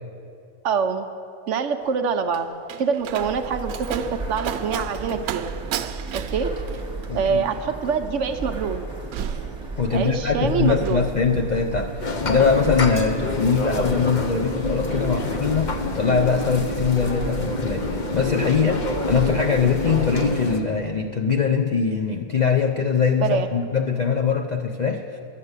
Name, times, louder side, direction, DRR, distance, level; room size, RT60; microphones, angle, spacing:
voice 1, 0.6-1.0 1.5-2.5 2.8-5.5 6.1-6.5 7.1-8.9 9.9-11.0 23.2-23.5, right 6 dB, 65° right, 7 dB, 0.9 m, -25 dB
Slam, 1.8-10.3 10.6-11.1, right 10 dB, 90° right, 1.1 m, -35 dB
sound 1, 3.2-20.4, right 3 dB, 5° right, 1.8 m, -34 dB
voice 2, 7.1-7.4 9.8-11.9 12.2-25.2, left 5 dB, 60° left, 4 dB, 0.4 m, -22 dB
sound 2, 12.0-20.6, left 2 dB, 40° left, 0.8 m, -27 dB
12.5 x 7.5 x 8.1 m, 2.7 s
omnidirectional pair, 1.5 m